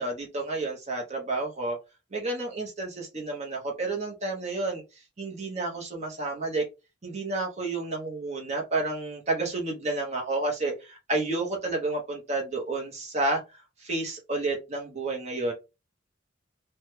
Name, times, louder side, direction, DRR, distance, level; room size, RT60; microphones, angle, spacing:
voice 1, 0.0-1.8 2.1-4.8 5.2-6.6 7.0-13.4 13.8-15.5, right 2 dB, 35° right, 0 dB, 0.8 m, -30 dB
3.1 x 2.1 x 3.1 m, 0.27 s
head